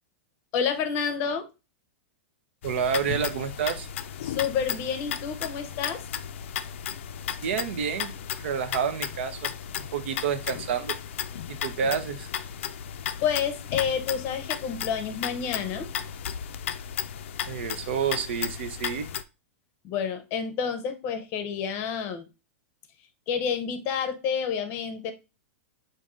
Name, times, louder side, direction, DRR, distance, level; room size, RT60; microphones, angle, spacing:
voice 1, 0.5-1.5 4.2-6.0 13.2-15.9 19.8-22.3 23.3-25.1, left 7 dB, 35° left, 9 dB, 0.7 m, -29 dB
sound 1, 2.6-19.2, left 9 dB, 70° left, 0.4 m, -35 dB
voice 2, 2.6-3.9 7.4-8.1 8.4-9.5 9.8-10.9 11.5-12.3 17.5-19.1, right 7 dB, 65° right, 9 dB, 0.7 m, -29 dB
5.2 x 2.6 x 3.6 m, 0.29 s
supercardioid pair, 155°, 7 cm